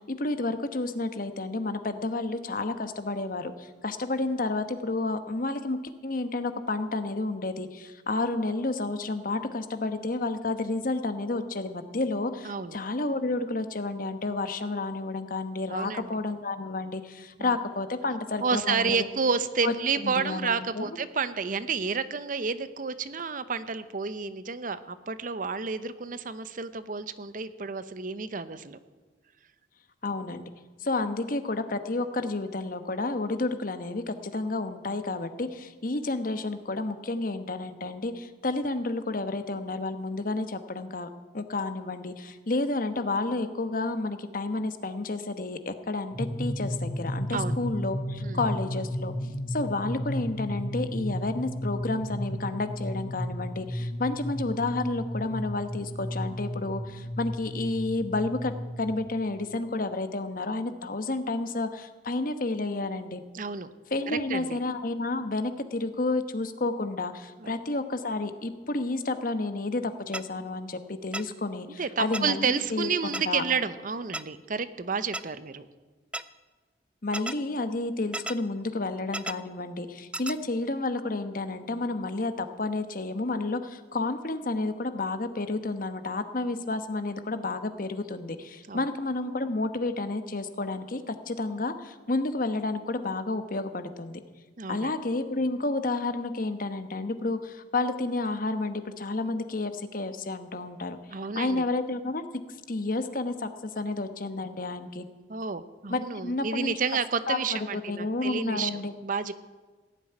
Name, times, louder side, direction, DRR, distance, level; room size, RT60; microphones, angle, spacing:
voice 1, 0.0-19.1 19.6-19.7 20.0-20.9 30.0-30.5 30.8-49.1 49.5-63.2 63.9-72.5 72.7-73.4 77.0-94.2 94.7-101.0 101.3-102.2 102.7-105.0 105.9-106.7 107.3-108.9, left 2 dB, 50° left, 9 dB, 1.1 m, -31 dB
voice 2, 12.4-12.8 15.7-16.1 17.4-17.5 18.4-28.8 47.3-47.6 48.2-48.4 63.3-63.7 64.1-64.6 67.4-67.6 71.8-75.7 88.7-88.9 94.6-94.9 101.1-101.7 105.3-109.3, right 5 dB, 50° right, 13 dB, 0.7 m, -30 dB
sound 1, 46.1-59.1, equal, 85° left, 2.6 m, -33 dB
sound 2, 70.1-70.2 71.1-71.2 72.1-72.2 73.1-73.2 74.1-74.2 75.1-75.2 76.1-76.2 77.1-77.3 78.1-78.3 79.1-79.3 80.1-80.3, right 2 dB, 5° right, 0.4 m, -32 dB
17.0 x 7.3 x 9.7 m, 1.3 s
head